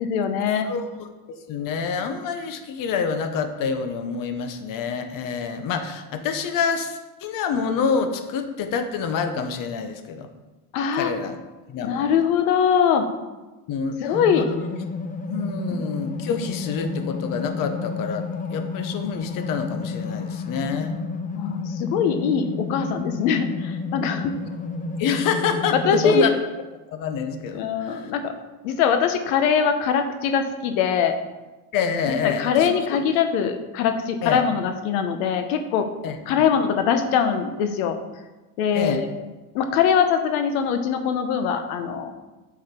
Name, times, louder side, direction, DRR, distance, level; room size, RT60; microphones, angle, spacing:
voice 1, 0.0-0.7 10.7-11.1 11.8-13.1 14.0-14.5 15.7-15.8 21.3-24.3 25.8-26.2 27.5-28.3 28.6-31.1 32.1-35.9 36.3-37.9 38.6-39.1 39.5-42.1, left 7 dB, 90° left, 7 dB, 1.0 m, -22 dB
voice 2, 0.6-10.3 11.0-11.4 11.7-12.1 13.7-14.0 14.3-14.6 15.3-21.0 25.0-26.3 26.9-28.1 31.7-32.7 34.2-34.4 36.0-36.2 38.7-39.0, left 6 dB, 50° left, 8 dB, 1.1 m, -27 dB
sound 1, 14.1-26.2, left 4 dB, 20° left, 0.6 m, -31 dB
8.0 x 7.3 x 4.4 m, 1.1 s
cardioid pair, 125°, 42 cm